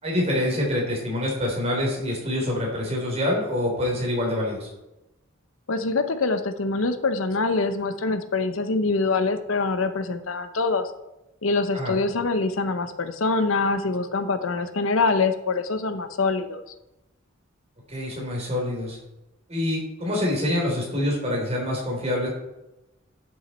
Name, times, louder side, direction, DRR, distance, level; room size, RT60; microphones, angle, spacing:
voice 1, 0.0-4.7 11.7-11.9 17.9-19.0 19.5-22.3, left 1 dB, 30° right, -2 dB, 3.6 m, -26 dB
voice 2, 5.7-10.9 11.4-16.6, left 3 dB, 80° left, 10 dB, 0.8 m, -24 dB
11.0 x 6.4 x 4.3 m, 0.96 s
head